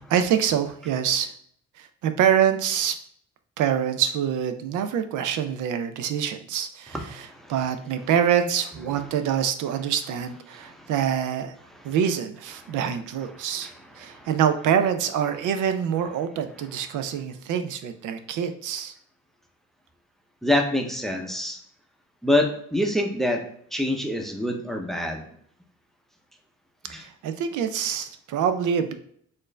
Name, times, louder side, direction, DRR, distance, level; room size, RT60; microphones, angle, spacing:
voice 1, 0.0-1.3 1.8-3.0 3.6-11.5 11.8-18.9 27.0-28.9, right 8 dB, 75° right, 8 dB, 0.5 m, -25 dB
voice 2, 6.9-7.5 10.5-10.9 11.8-11.9 12.6-12.7 13.4-13.7 14.1-14.3 20.4-21.6 22.2-23.4 23.7-25.3 26.9-27.0, left 1 dB, ahead, 3 dB, 0.6 m, -26 dB
4.3 x 2.5 x 3.2 m, 0.65 s
cardioid pair, 95°, 31 cm